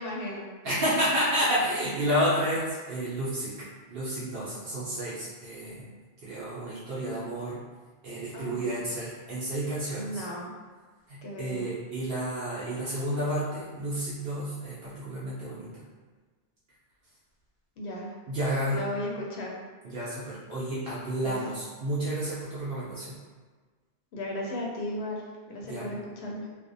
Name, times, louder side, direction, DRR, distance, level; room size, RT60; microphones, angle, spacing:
voice 1, 0.0-0.5 8.3-8.8 9.9-10.5 11.2-11.6 17.8-18.1 18.7-19.5 21.2-21.4 24.1-25.2 25.5-26.5, left 1 dB, 80° left, -2 dB, 0.9 m, -35 dB
voice 2, 0.6-5.9 6.2-7.6 8.0-10.2 11.1-15.8 18.3-18.8 19.8-23.2 25.6-25.9, equal, 65° right, -9 dB, 0.8 m, -31 dB
2.5 x 2.1 x 2.5 m, 1.4 s
omnidirectional pair, 1.1 m